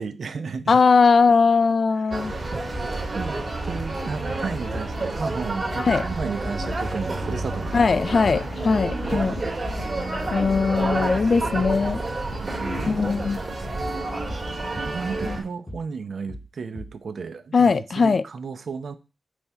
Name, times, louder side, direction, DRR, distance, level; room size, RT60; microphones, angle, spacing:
voice 1, 0.0-0.8 2.0-2.2 2.5-7.9 9.1-9.6 10.3-10.4 10.8-13.6 13.9-14.1 14.5-19.0, right 5 dB, 55° right, 0.7 m, -34 dB
voice 2, 0.7-2.3 5.8-6.0 7.7-9.4 10.3-12.0 12.9-13.4 15.3-15.4 17.5-18.2, left 4 dB, 45° left, 0.3 m, -20 dB
sound 1, 2.1-15.4, right 2 dB, 30° right, 2.4 m, -29 dB
sound 2, 7.3-7.5 7.8-8.0 8.2-8.4 8.9-9.1 9.3-9.5 9.8-10.0 10.3-10.5 10.7-10.9 11.3-11.5 11.8-12.0 12.3-12.5 12.7-12.9 13.2-13.4 13.8-14.0 14.3-14.5 14.7-14.9 15.2-15.4 15.7-15.9 16.3-16.5 16.8-17.0, equal, 15° left, 1.0 m, -38 dB
8.6 x 3.6 x 5.5 m
wide cardioid pair, 175°, 0 cm